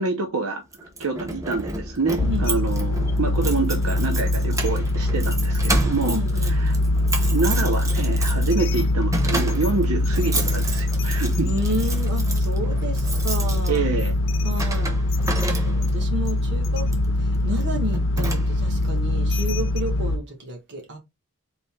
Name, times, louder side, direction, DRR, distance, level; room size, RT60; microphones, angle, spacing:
voice 1, 0.0-6.2 6.4-6.7 7.3-11.5 13.7-14.1, right 4 dB, 80° right, 0.8 m, -27 dB
Keys jangling, 0.7-16.1 16.8-17.1 17.6-17.7 17.9-18.8, right 2 dB, 15° right, 0.7 m, -31 dB
sound 1, 2.2-20.2, left 1 dB, 60° left, 0.4 m, -23 dB
voice 2, 6.1-6.6 11.3-13.8 14.4-14.9 15.4-21.0, equal, 55° right, 1.4 m, -31 dB
4.0 x 2.9 x 3.5 m
head